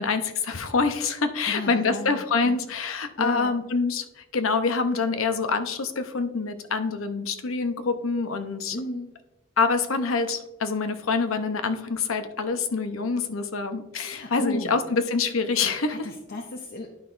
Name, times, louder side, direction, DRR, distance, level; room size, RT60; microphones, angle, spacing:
voice 1, 0.0-4.0 4.3-8.8 9.6-16.1, left 4 dB, 90° left, 9 dB, 0.7 m, -26 dB
voice 2, 1.5-2.7 3.2-3.5 8.7-9.1 14.1-14.8 15.9-17.0, left 2 dB, 50° left, 2 dB, 0.6 m, -33 dB
11.0 x 5.6 x 2.5 m, 1.0 s
head